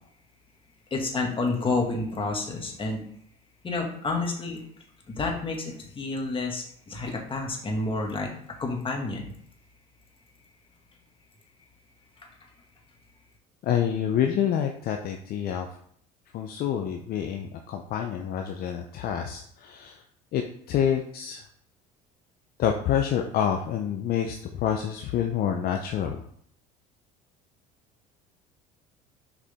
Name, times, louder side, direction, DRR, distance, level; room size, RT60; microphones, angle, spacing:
voice 1, 0.9-3.0 3.6-4.6 5.1-8.3 8.6-9.2, left 3 dB, 30° left, 1 dB, 2.0 m, -29 dB
voice 2, 13.6-15.8 16.3-20.0 20.3-20.4 20.7-21.4 22.6-26.2, left 9 dB, 55° left, 4 dB, 0.7 m, -27 dB
6.8 x 4.9 x 3.7 m, 0.62 s
supercardioid pair, 85°, 19 cm